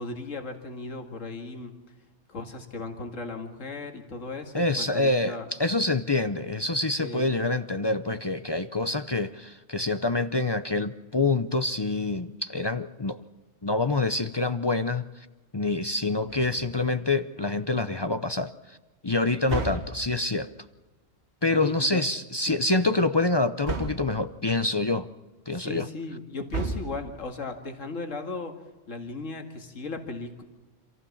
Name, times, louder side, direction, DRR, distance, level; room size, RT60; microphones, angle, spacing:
voice 1, 0.0-1.7 2.3-5.5 7.0-7.3 21.5-22.0 22.5-22.6 25.5-28.5 28.9-30.4, left 3 dB, 85° left, 4 dB, 2.3 m, -36 dB
voice 2, 4.5-13.2 13.6-15.3 15.5-18.8 19.0-20.5 21.4-25.1 25.5-25.9, left 2 dB, 30° left, 11 dB, 0.5 m, -26 dB
sound 1, 16.3-16.9 19.5-20.4 23.7-24.3 26.5-27.3, right 3 dB, 60° right, 1.7 m, -33 dB
27.0 x 15.5 x 7.2 m, 1.2 s
omnidirectional pair, 1.3 m